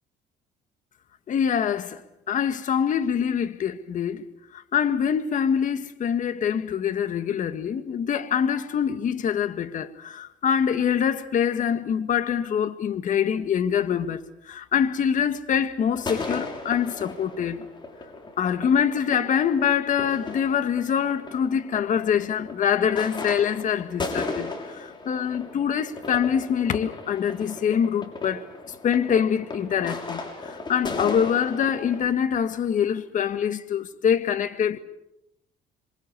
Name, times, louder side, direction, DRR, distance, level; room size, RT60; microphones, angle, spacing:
voice 1, 1.3-4.3 4.5-17.6 18.4-34.8, left 8 dB, 50° left, 1.8 m, -25 dB
sound 1, 15.9-32.0, left 3 dB, 25° left, 6.3 m, -36 dB
27.0 x 25.0 x 7.0 m
cardioid pair, 110°, 17 cm